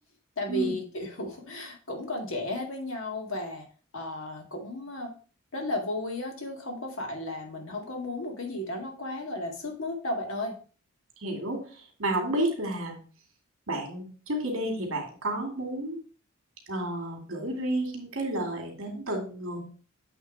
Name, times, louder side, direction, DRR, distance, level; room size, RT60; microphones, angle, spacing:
voice 1, 0.4-3.7 3.9-5.1 5.5-10.5, left 1 dB, 65° left, 2 dB, 1.9 m, -34 dB
voice 2, 11.2-13.0 13.7-16.0 16.7-19.6, right 1 dB, 70° right, 1 dB, 2.4 m, -31 dB
8.2 x 3.6 x 4.7 m, 0.38 s
head